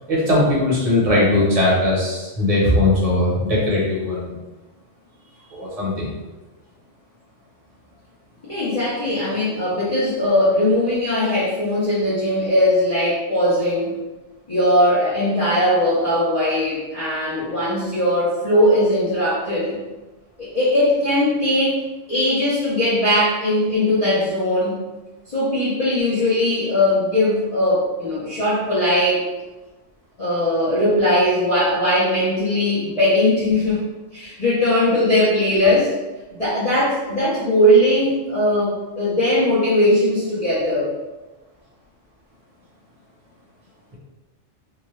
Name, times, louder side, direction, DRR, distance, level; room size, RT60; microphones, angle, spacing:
voice 1, 0.1-4.3 5.5-6.1, left 1 dB, 30° right, -6 dB, 0.9 m, -19 dB
voice 2, 8.4-13.9 14.5-19.7 20.4-21.8 22.1-24.8 25.3-29.2 30.2-33.8 34.1-35.9 36.3-40.9, left 1 dB, 35° left, -12 dB, 0.9 m, -19 dB
2.7 x 2.1 x 3.1 m, 1.1 s
omnidirectional pair, 1.3 m